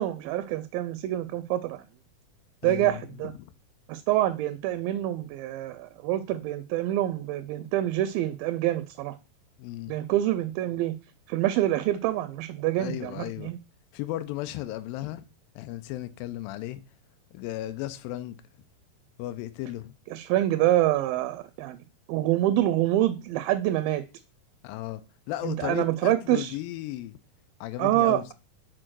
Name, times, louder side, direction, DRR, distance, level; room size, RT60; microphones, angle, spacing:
voice 1, 0.0-1.8 2.6-3.3 3.9-9.2 9.9-11.0 11.3-13.6 20.1-21.8 22.1-24.0 25.4-26.5 27.8-28.3, right 14 dB, 80° right, 2.2 m, -26 dB
voice 2, 2.6-3.5 9.6-9.9 12.8-13.5 13.9-15.2 15.6-16.8 17.3-18.4 19.2-19.9 24.6-27.2 27.6-28.3, left 15 dB, 80° left, 2.3 m, -35 dB
6.3 x 4.6 x 6.1 m
omnidirectional pair, 4.2 m